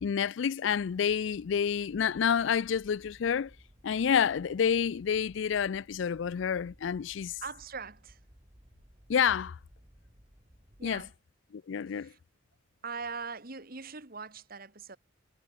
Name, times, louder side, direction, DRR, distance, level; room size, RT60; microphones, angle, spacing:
voice 1, 0.0-3.5 3.8-7.4 9.1-9.6 10.8-11.1 11.5-12.1, left 7 dB, 65° left, 0.4 m, -29 dB
sound 1, 0.7-11.1, equal, 25° right, 4.1 m, -59 dB
voice 2, 7.4-8.2 10.8-11.1 11.9-12.2 12.8-15.0, right 5 dB, 45° right, 2.1 m, -41 dB
head